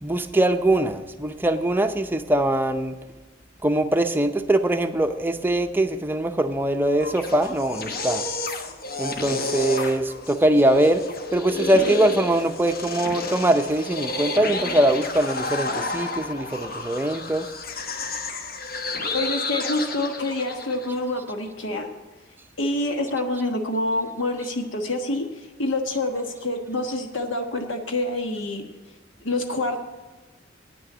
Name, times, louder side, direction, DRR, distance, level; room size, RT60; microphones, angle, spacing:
voice 1, 0.0-2.9 3.6-8.2 9.0-11.0 11.3-17.5, right 1 dB, 10° right, 6 dB, 0.6 m, -22 dB
sound 1, 6.9-21.0, left 2 dB, 50° left, 1.0 m, -31 dB
voice 2, 19.1-21.9 22.6-28.6 29.2-29.8, left 2 dB, 80° left, 5 dB, 1.3 m, -27 dB
9.0 x 6.4 x 7.9 m, 1.2 s
head